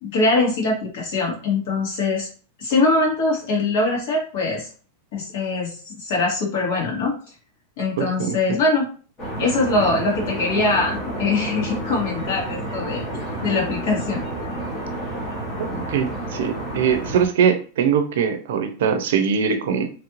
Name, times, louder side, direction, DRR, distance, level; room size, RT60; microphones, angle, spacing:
voice 1, 0.0-2.3 2.6-4.7 5.1-7.2 7.8-8.9 9.4-13.0 13.4-14.2, left 3 dB, 55° left, -3 dB, 1.7 m, -22 dB
voice 2, 8.0-8.4 15.6-19.9, right 7 dB, 70° right, 8 dB, 0.6 m, -22 dB
sound 1, 9.2-17.3, right 1 dB, 25° left, 1.1 m, -30 dB
3.2 x 2.4 x 3.0 m, 0.39 s
supercardioid pair, 165°, 0 cm